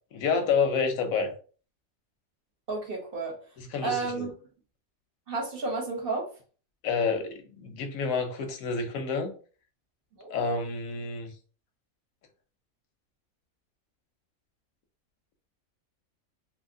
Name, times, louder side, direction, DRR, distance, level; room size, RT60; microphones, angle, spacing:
voice 1, 0.1-1.3 3.6-4.3 6.8-9.3 10.3-11.3, left 5 dB, 85° left, 1.1 m, -29 dB
voice 2, 2.7-3.4 3.8-4.3 5.3-6.3 10.2-10.3, right 3 dB, 50° right, 1.0 m, -31 dB
2.8 x 2.7 x 2.6 m
omnidirectional pair, 1.4 m